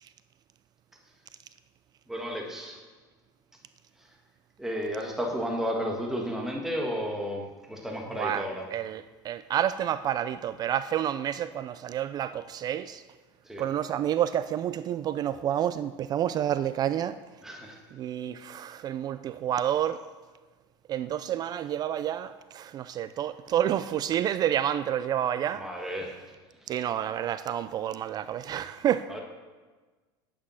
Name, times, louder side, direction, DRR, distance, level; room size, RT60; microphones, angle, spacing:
voice 1, 2.1-2.8 4.0-4.1 4.6-8.7 13.4-13.7 17.4-17.8 25.5-26.2 26.6-26.7 29.1-29.2, equal, 5° right, 1.6 m, -33 dB
voice 2, 8.7-13.0 13.6-17.2 17.9-20.0 20.9-25.6 26.7-29.1, right 10 dB, 35° right, 0.4 m, -29 dB
9.8 x 8.7 x 5.6 m
supercardioid pair, 135°, 12 cm